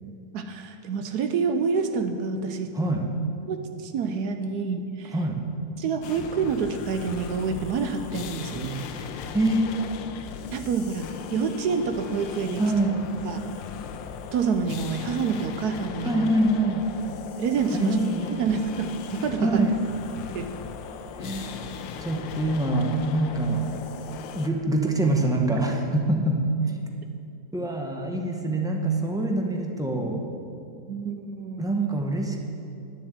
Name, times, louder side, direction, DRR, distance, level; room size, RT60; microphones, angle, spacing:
voice 1, 0.0-2.7 3.5-5.1 5.8-8.9 10.5-12.6 13.2-13.4 14.3-16.3 17.4-18.0 18.4-19.6 20.3-20.5 30.9-31.7, right 5 dB, 70° right, 7 dB, 1.1 m, -28 dB
voice 2, 2.7-3.1 5.1-5.4 8.9-9.7 12.6-13.1 16.0-16.9 17.7-18.4 19.4-19.8 21.2-21.6 22.0-23.8 24.3-26.5 27.5-30.2 31.6-32.4, right 2 dB, 5° right, 1 dB, 0.4 m, -25 dB
sound 1, 6.0-24.5, left 7 dB, 90° left, 1.4 m, -38 dB
10.5 x 7.2 x 8.0 m, 2.6 s
omnidirectional pair, 2.0 m